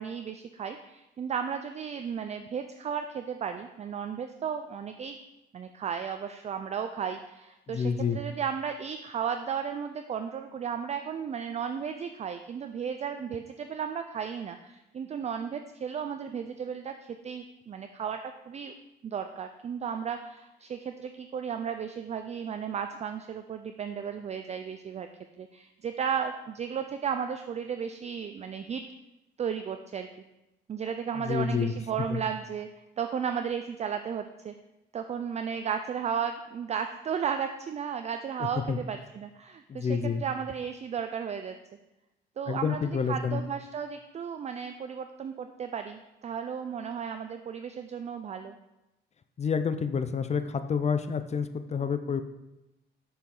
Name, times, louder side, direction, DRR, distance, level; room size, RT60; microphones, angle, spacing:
voice 1, 0.0-5.2 5.5-18.7 19.0-25.1 25.4-28.8 29.4-30.1 30.7-32.7 33.0-34.5 34.9-41.6 42.4-42.8 43.1-48.5, right 7 dB, 35° right, 7 dB, 0.4 m, -34 dB
voice 2, 7.7-8.2 31.2-31.7 32.1-32.2 38.4-38.8 39.7-40.2 42.5-43.4 49.4-52.2, left 6 dB, 35° left, 10 dB, 0.5 m, -29 dB
6.7 x 4.7 x 3.8 m, 0.98 s
cardioid pair, 90°, 20 cm